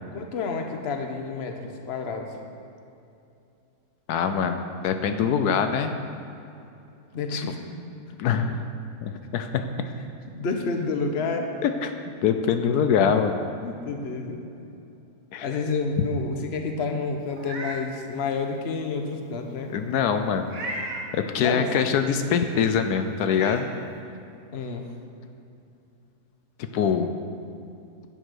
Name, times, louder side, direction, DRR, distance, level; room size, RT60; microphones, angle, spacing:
voice 1, 0.1-2.4 7.1-7.6 9.8-9.9 10.3-11.6 13.6-14.5 15.4-19.7 21.4-21.8 24.5-24.9, left 4 dB, 45° left, 4 dB, 1.2 m, -29 dB
voice 2, 4.1-5.9 7.3-7.4 8.2-8.7 9.0-9.7 11.6-11.9 12.2-13.4 15.3-15.5 16.0-16.1 19.7-20.6 21.1-23.7 26.7-27.1, left 7 dB, 85° left, 7 dB, 1.2 m, -24 dB
Meow, 17.3-17.8 18.3-18.4 20.5-21.1 22.7-22.8 23.3-23.6, right 2 dB, 65° right, 1.7 m, -34 dB
10.5 x 9.2 x 6.4 m, 2.7 s
omnidirectional pair, 1.6 m